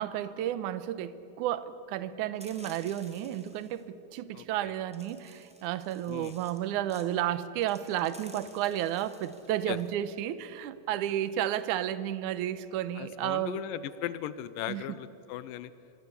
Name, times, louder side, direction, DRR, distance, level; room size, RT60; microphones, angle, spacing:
voice 1, 0.0-13.6 14.7-14.8, right 12 dB, 75° right, 14 dB, 2.1 m, -32 dB
sound 1, 2.4-3.8 4.9-6.6 6.9-7.1 7.6-9.9, equal, 5° right, 1.5 m, -54 dB
voice 2, 4.3-4.7 6.1-6.4 9.7-9.8 13.0-15.7, left 12 dB, 80° left, 15 dB, 2.4 m, -38 dB
25.5 x 22.0 x 8.4 m, 2.8 s
omnidirectional pair, 4.0 m